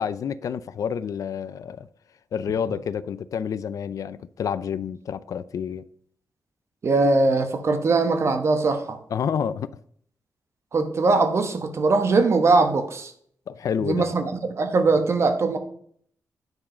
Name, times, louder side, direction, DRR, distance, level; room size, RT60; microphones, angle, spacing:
voice 1, 0.0-1.9 2.3-5.8 9.1-9.7 13.5-14.1, left 7 dB, 70° left, 0.4 m, -29 dB
voice 2, 6.8-9.0 10.7-13.1 13.8-15.6, right 3 dB, 50° right, 1.1 m, -21 dB
9.5 x 4.8 x 5.0 m
wide cardioid pair, 120°, 6 cm